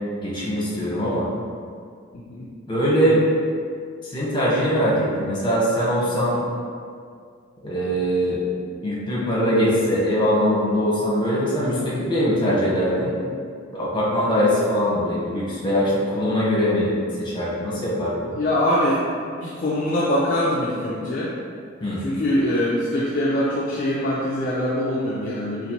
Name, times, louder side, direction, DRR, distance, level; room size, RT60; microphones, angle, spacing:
voice 1, 0.2-1.3 2.7-3.2 4.0-6.4 7.6-8.4 8.8-13.1 13.7-16.9 17.2-18.3 21.8-22.0, equal, 25° left, -7 dB, 0.9 m, -22 dB
voice 2, 2.1-2.4 9.7-9.8 11.8-12.0 18.3-19.1 19.3-21.3 22.0-25.7, left 1 dB, 45° left, -6 dB, 0.4 m, -23 dB
4.0 x 2.5 x 2.9 m, 2.2 s
head